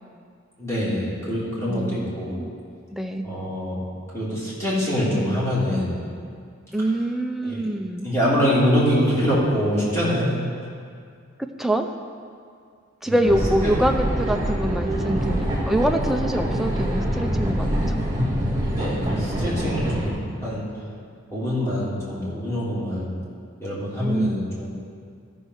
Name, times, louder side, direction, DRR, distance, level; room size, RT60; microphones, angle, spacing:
voice 1, 0.6-2.4 3.2-3.8 4.1-5.9 7.4-7.6 8.0-10.3 13.1-13.2 16.6-16.8 18.7-20.6 21.3-23.2 23.6-24.7, equal, 15° left, -8 dB, 2.8 m, -24 dB
voice 2, 1.7-2.5 2.9-3.2 6.7-8.1 11.6-11.9 13.0-18.0 24.0-24.4, right 1 dB, ahead, 4 dB, 0.5 m, -25 dB
sound 1, 13.3-20.1, equal, 20° right, 1.8 m, -25 dB
13.0 x 5.4 x 6.3 m, 2.2 s
head